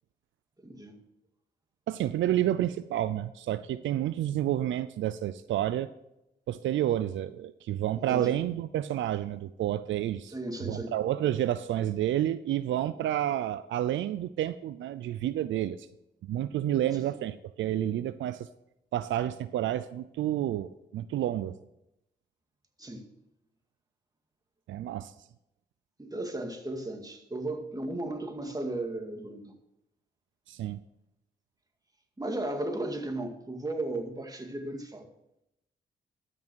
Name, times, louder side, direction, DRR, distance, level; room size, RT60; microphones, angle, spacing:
voice 1, 0.6-1.0 8.0-8.4 10.3-10.9 17.0-17.1 22.8-23.1 26.0-29.5 32.2-35.1, right 2 dB, 20° right, 2.1 m, -35 dB
voice 2, 1.9-5.9 6.5-10.3 10.6-15.8 16.3-18.5 18.9-21.5 24.7-25.1 30.5-30.8, right 12 dB, 85° right, 0.5 m, -30 dB
13.0 x 6.1 x 6.2 m
cardioid pair, 55°, 19 cm